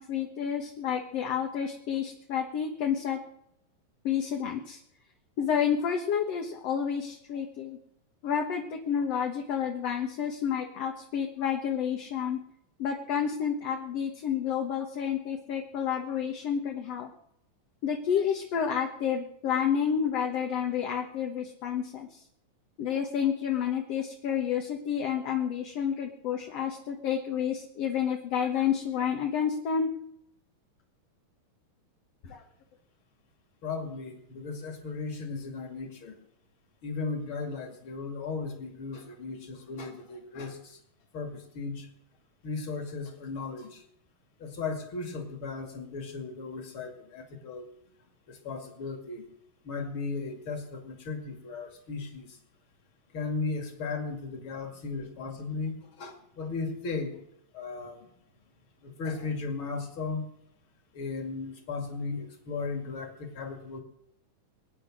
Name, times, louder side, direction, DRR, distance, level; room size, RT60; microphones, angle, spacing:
voice 1, 0.0-3.2 4.0-4.8 5.4-7.8 8.2-12.4 12.8-17.1 17.8-22.2 22.8-29.9 32.2-32.4, left 8 dB, 55° left, 2 dB, 2.0 m, -30 dB
voice 2, 33.6-36.2 36.8-40.8 41.1-41.9 42.4-43.8 44.4-47.7 48.3-49.3 49.6-52.4 53.1-57.2 57.5-58.1 58.8-60.3 60.9-63.8, left 4 dB, 40° left, 5 dB, 2.8 m, -36 dB
23.0 x 10.0 x 6.3 m, 0.77 s
omnidirectional pair, 4.0 m